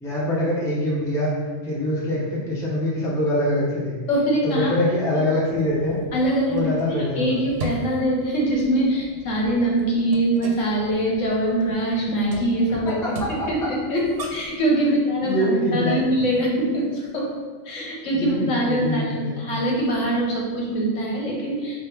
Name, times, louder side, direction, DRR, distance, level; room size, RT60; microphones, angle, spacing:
voice 1, 0.0-1.3 1.6-4.0 4.4-6.0 6.5-7.4 13.2-13.5 15.2-16.0 18.1-19.4, left 1 dB, 5° left, -5 dB, 0.4 m, -24 dB
voice 2, 4.1-4.7 6.1-14.0 14.3-17.3 17.7-21.8, right 1 dB, 70° left, -2 dB, 1.1 m, -23 dB
sound 1, 5.5-14.6, right 2 dB, 75° right, 0.9 m, -39 dB
3.4 x 2.3 x 4.4 m, 1.5 s
omnidirectional pair, 1.4 m